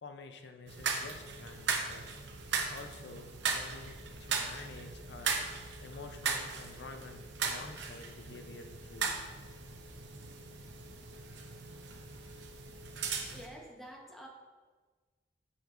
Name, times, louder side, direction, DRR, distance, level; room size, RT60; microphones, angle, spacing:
voice 1, 0.0-2.0 2.7-5.4 5.8-9.3, left 3 dB, 70° left, 6 dB, 0.6 m, -49 dB
sound 1, 0.7-13.5, right 5 dB, 75° right, 0.8 m, -38 dB
voice 2, 13.3-14.3, equal, ahead, -2 dB, 1.0 m, -48 dB
7.9 x 6.9 x 2.5 m, 1.4 s
head